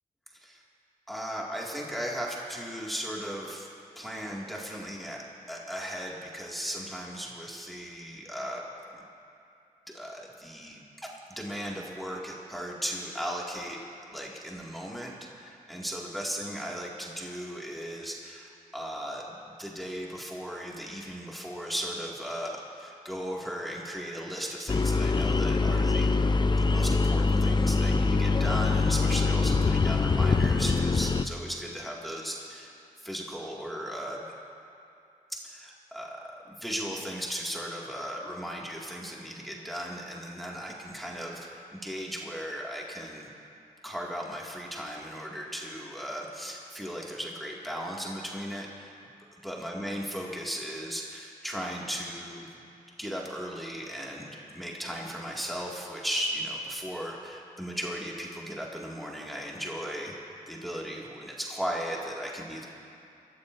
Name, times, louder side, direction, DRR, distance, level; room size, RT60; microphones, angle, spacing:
voice 1, 1.1-3.7 4.0-5.2 5.5-8.6 9.9-13.8 14.1-19.2 19.6-26.1 26.6-34.3 35.4-43.3 43.8-49.0 49.4-52.5 53.0-54.3 54.5-60.1 60.5-62.7, equal, ahead, -3 dB, 2.1 m, -36 dB
sound 1, 24.7-31.2, left 3 dB, 30° left, 0.6 m, -24 dB
22.5 x 14.0 x 2.6 m, 2.6 s
cardioid pair, 50°, 15 cm